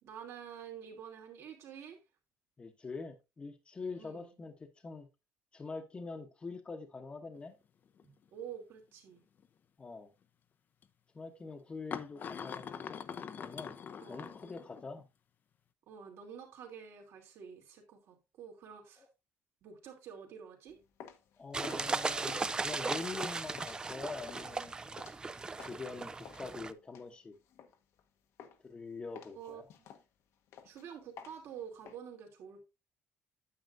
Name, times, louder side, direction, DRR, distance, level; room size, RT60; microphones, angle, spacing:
voice 1, 0.0-2.0 3.9-4.3 8.0-9.2 14.0-14.4 15.9-19.1 19.6-20.8 29.3-29.9 30.6-32.7, right 8 dB, 65° right, 2.7 m, -48 dB
voice 2, 2.6-5.1 5.5-7.5 9.8-10.1 11.1-13.0 13.4-13.7 14.1-15.1 19.0-19.1 21.4-25.0 25.6-27.3 28.6-29.7, left 4 dB, 20° left, 1.0 m, -44 dB
sound 1, 7.3-7.4 8.0-8.2 9.4-9.5 10.8-10.9 11.9-15.0, left 7 dB, 40° left, 0.6 m, -43 dB
sound 2, 20.7-25.9 26.2-28.1 28.4-28.8 29.1-31.9, left 8 dB, 70° left, 1.0 m, -53 dB
sound 3, 21.5-26.7, right 3 dB, 15° right, 0.4 m, -37 dB
9.4 x 8.0 x 2.6 m
cardioid pair, 145°, 5 cm